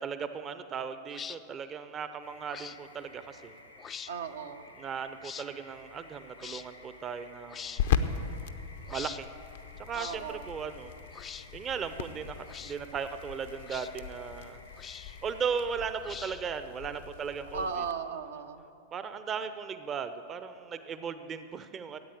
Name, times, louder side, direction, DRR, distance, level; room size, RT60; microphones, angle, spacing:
voice 1, 0.0-3.6 4.8-8.0 8.9-9.3 9.8-10.9 11.5-14.6 15.2-17.7 18.9-22.0, right 6 dB, 25° right, 11 dB, 0.7 m, -37 dB
sound 1, 1.1-1.4 2.5-2.8 3.8-4.1 5.2-5.5 6.4-6.6 7.5-7.8 8.9-9.2 9.9-10.2 11.1-11.5 12.4-12.8 13.7-13.9 14.8-15.2 16.0-16.6, left 7 dB, 20° left, 0.4 m, -43 dB
sound 2, 2.2-15.6, left 2 dB, 85° left, 1.5 m, -54 dB
voice 2, 4.1-4.7 9.9-10.5 17.5-18.6, right 6 dB, 65° right, 6 dB, 0.8 m, -36 dB
sound 3, 5.7-17.9, left 7 dB, 60° left, 0.7 m, -38 dB
14.5 x 8.9 x 8.5 m, 2.8 s
figure-of-eight pair, 90°, 0 cm